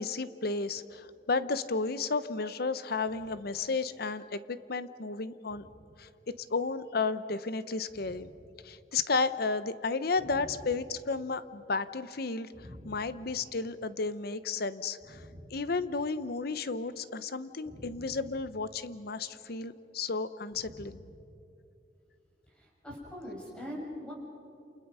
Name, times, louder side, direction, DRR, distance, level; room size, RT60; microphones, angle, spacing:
voice 1, 0.0-5.6 6.0-6.1 6.5-8.3 8.6-15.2 15.5-21.0, left 4 dB, 55° left, 14 dB, 0.8 m, -33 dB
voice 2, 12.5-12.9 15.1-15.5 17.6-18.2 20.6-21.0 22.6-24.1, equal, 5° left, -5 dB, 6.7 m, -44 dB
28.5 x 28.5 x 5.6 m, 2.7 s
head